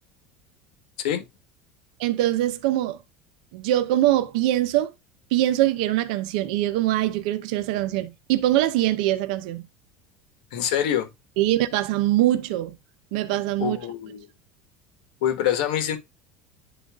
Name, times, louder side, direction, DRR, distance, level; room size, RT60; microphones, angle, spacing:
voice 1, 2.0-3.0 3.5-4.9 5.3-9.6 11.4-12.7 13.1-13.8, right 14 dB, 65° right, 0.7 m, -23 dB
voice 2, 10.5-11.1 13.6-14.3 15.2-16.0, left 10 dB, 80° left, 1.4 m, -25 dB
11.0 x 4.0 x 2.4 m
cardioid pair, 175°, 4 cm